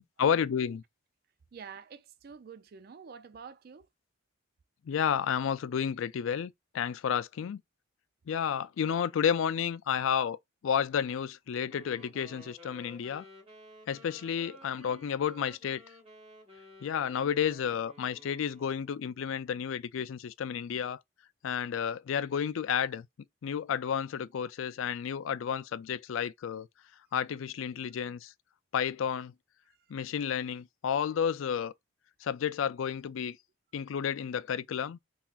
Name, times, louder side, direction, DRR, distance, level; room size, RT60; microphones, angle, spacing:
voice 1, 0.2-0.8 4.8-7.6 8.3-10.4 10.6-13.3 13.9-15.8 16.8-21.0 21.4-23.1 23.4-26.7 27.1-28.3 28.7-29.3 29.9-31.7 32.2-33.4 33.7-35.0, left 8 dB, 70° left, 0.3 m, -31 dB
voice 2, 1.5-3.9, right 6 dB, 45° right, 0.3 m, -48 dB
Wind instrument woodwind instrument, 11.7-19.1, equal, 30° right, 1.3 m, -54 dB
3.9 x 2.8 x 2.4 m
head